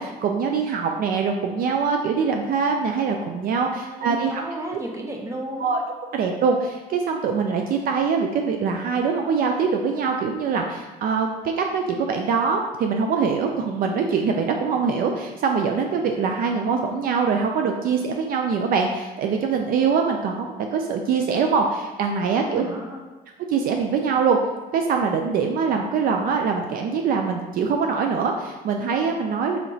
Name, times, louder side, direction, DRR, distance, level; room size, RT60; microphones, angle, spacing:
voice 1, 0.0-4.4 5.6-5.8 6.1-11.3 11.6-22.6 23.5-24.4 24.7-29.6, right 5 dB, 60° right, 3 dB, 0.4 m, -23 dB
voice 2, 3.8-5.7 22.3-23.0, right 1 dB, 15° right, 1 dB, 0.6 m, -34 dB
4.3 x 2.8 x 2.7 m, 1.2 s
cardioid pair, 110°, 17 cm